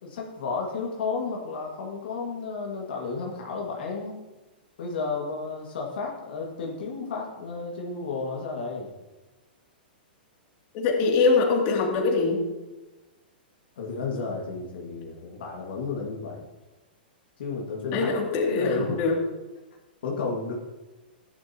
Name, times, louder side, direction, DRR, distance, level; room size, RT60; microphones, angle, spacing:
voice 1, 0.0-4.2 4.8-8.9 13.8-16.4 17.4-18.2 18.5-19.0 20.0-20.5, left 4 dB, 70° left, -2 dB, 2.0 m, -32 dB
voice 2, 10.7-12.4 17.9-19.1, left 4 dB, 45° left, 0 dB, 2.7 m, -23 dB
15.0 x 11.0 x 2.9 m, 1.1 s
hypercardioid pair, 130°, 6 cm